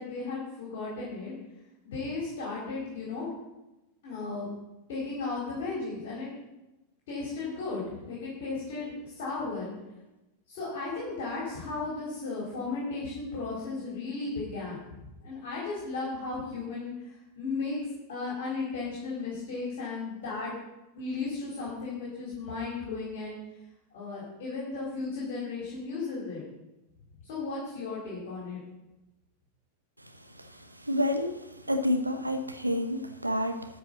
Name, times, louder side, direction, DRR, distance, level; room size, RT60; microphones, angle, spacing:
voice 1, 0.0-1.3 1.8-3.3 4.0-4.5 4.9-6.3 7.1-9.7 10.5-17.8 18.1-20.5 20.9-23.4 23.9-26.4 27.2-28.6, left 3 dB, 55° left, -6 dB, 4.2 m, -35 dB
voice 2, 30.9-31.4 31.7-33.7, left 1 dB, 85° right, 7 dB, 1.0 m, -28 dB
13.0 x 5.5 x 7.3 m, 0.98 s
figure-of-eight pair, 90°, 0 cm